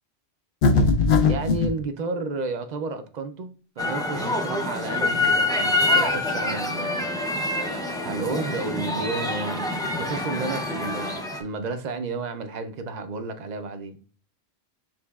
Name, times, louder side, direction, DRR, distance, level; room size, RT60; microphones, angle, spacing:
sound 1, 0.6-1.7, left 4 dB, 60° left, 0.7 m, -19 dB
voice 1, 1.3-3.5 3.8-7.2 8.0-14.0, right 3 dB, 55° right, 0.5 m, -32 dB
sound 2, 3.8-11.4, left 2 dB, 5° left, 0.4 m, -26 dB
6.5 x 3.0 x 2.3 m
omnidirectional pair, 1.1 m